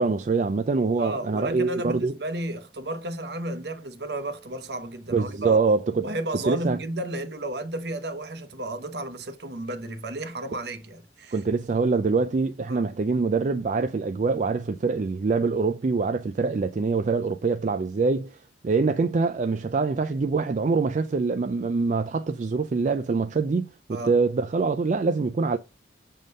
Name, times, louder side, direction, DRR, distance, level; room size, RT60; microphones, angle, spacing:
voice 1, 0.0-2.1 5.1-6.1 6.5-6.8 11.3-18.4 18.6-25.6, right 4 dB, 40° right, 0.4 m, -24 dB
voice 2, 1.0-5.6 6.0-11.4 12.7-12.9 23.9-24.2, right 1 dB, 60° right, 0.9 m, -33 dB
6.4 x 3.8 x 5.4 m
head